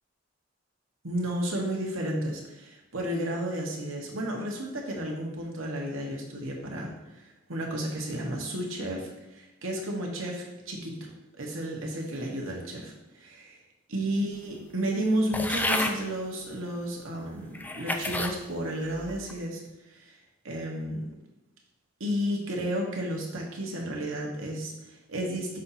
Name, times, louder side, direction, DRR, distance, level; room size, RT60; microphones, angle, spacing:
voice 1, 1.0-6.9 7.2-11.1 11.4-13.6 13.9-19.6 19.9-20.1 20.4-21.1 22.0-25.6, right 1 dB, 90° right, -1 dB, 1.4 m, -32 dB
sound 1, 15.3-16.0 16.8-16.9 17.5-18.4 18.9-19.3, left 2 dB, 10° left, 0.4 m, -30 dB
6.5 x 2.8 x 5.7 m, 0.98 s
head